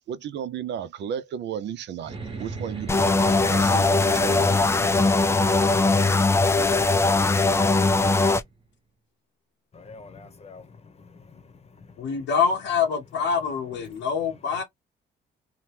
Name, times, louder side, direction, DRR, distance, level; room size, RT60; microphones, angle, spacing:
voice 1, 0.1-3.1 3.3-5.3, right 8 dB, 65° right, 0.5 m, -35 dB
sound 1, 2.0-8.6, right 4 dB, 25° right, 1.0 m, -39 dB
sound 2, 2.9-8.4, left 3 dB, 15° left, 0.3 m, -20 dB
voice 2, 3.1-4.3 9.7-12.3 13.8-14.1, left 4 dB, 30° left, 0.8 m, -43 dB
voice 3, 12.0-14.6, left 6 dB, 90° left, 0.9 m, -25 dB
2.8 x 2.2 x 3.2 m
cardioid pair, 90°, 20 cm